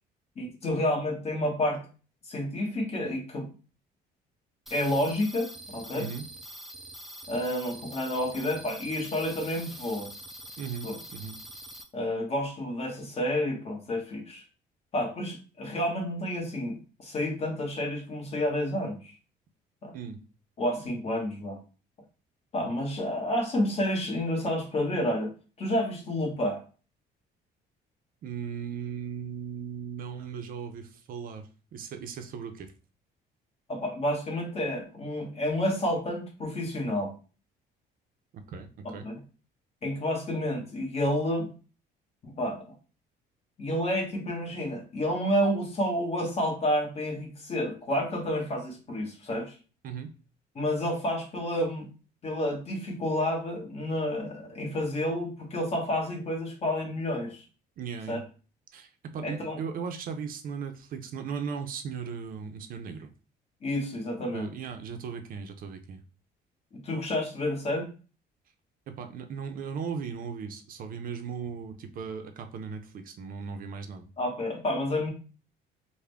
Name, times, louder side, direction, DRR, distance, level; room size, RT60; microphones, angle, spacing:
voice 1, 0.4-1.8 2.3-3.5 4.7-6.1 7.3-10.1 10.8-11.0 11.9-14.4 14.9-19.1 19.8-20.0 20.6-21.6 22.5-25.3 25.6-26.6 33.7-37.1 38.8-39.2 39.8-41.5 42.2-42.7 43.6-49.5 50.5-51.9 52.2-57.4 58.1-58.2 59.2-59.6 63.6-64.5 66.7-67.9 74.2-75.1, left 1 dB, 35° left, 1 dB, 1.1 m, -30 dB
sound 1, 4.7-11.8, equal, ahead, 0.4 m, -44 dB
voice 2, 10.6-11.4 19.9-20.2 28.2-32.7 38.3-39.1 49.8-50.1 57.8-58.3 58.7-63.1 64.3-66.0 68.9-74.1, right 6 dB, 55° right, 7 dB, 0.5 m, -37 dB
3.5 x 2.1 x 3.3 m, 0.35 s
cardioid pair, 125°, 18 cm